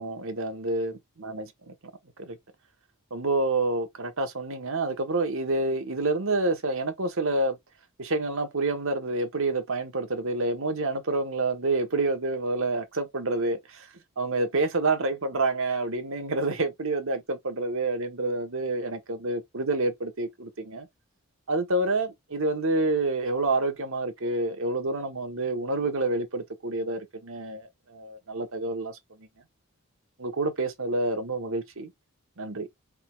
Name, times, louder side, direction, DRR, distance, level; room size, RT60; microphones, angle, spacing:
voice 1, 0.0-1.7 2.2-2.4 3.1-7.6 8.0-13.9 14.2-20.9 21.5-29.3 30.2-31.9 32.4-32.7, right 2 dB, 65° right, 1.2 m, -28 dB
4.6 x 3.8 x 2.3 m
head